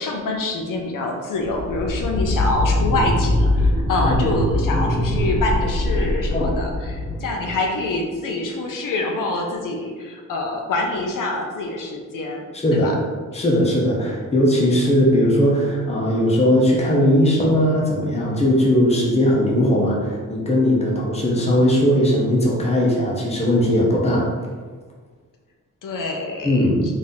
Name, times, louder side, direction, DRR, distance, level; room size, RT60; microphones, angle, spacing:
voice 1, 0.0-12.5 12.7-12.9 13.3-13.4 25.8-26.7, left 2 dB, 75° left, 1 dB, 0.8 m, -26 dB
sound 1, 1.5-7.9, left 1 dB, 15° right, 0.5 m, -22 dB
voice 2, 12.5-13.0 13.3-24.3 26.4-26.8, equal, 20° left, -3 dB, 0.8 m, -18 dB
4.1 x 2.8 x 3.6 m, 1.5 s
wide cardioid pair, 160°, 33 cm